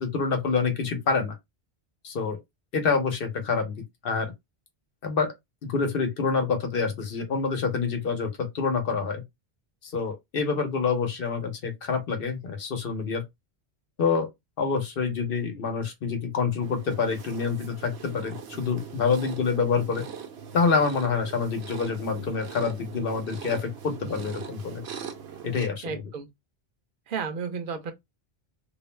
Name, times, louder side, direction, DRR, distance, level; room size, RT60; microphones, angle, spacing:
voice 1, 0.0-1.3 2.0-2.4 2.7-4.3 5.0-5.3 5.6-9.2 9.8-13.2 14.0-14.3 14.6-20.1 20.5-24.8 25.4-26.0, left 5 dB, 65° left, 0.9 m, -27 dB
sound 1, 16.6-25.7, right 7 dB, 85° right, 0.9 m, -41 dB
voice 2, 25.8-26.3 27.1-27.9, right 6 dB, 60° right, 0.7 m, -33 dB
2.4 x 2.0 x 3.0 m
omnidirectional pair, 1.1 m